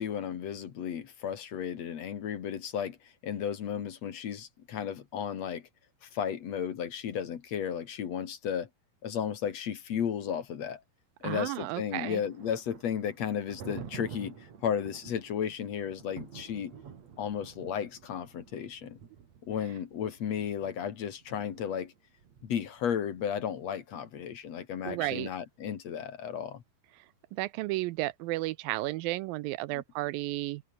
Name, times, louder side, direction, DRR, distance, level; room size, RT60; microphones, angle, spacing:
voice 1, 0.0-5.6 6.0-8.7 9.0-10.8 11.2-16.7 17.2-19.0 19.4-21.9 22.4-26.6 29.7-29.8, left 8 dB, 50° left, 2.5 m, -34 dB
voice 2, 11.2-12.2 24.9-25.3 27.3-30.6, right 18 dB, 85° right, 2.1 m, -33 dB
Thunder, 11.5-23.2, right 7 dB, 45° right, 3.4 m, -50 dB
omnidirectional pair, 4.6 m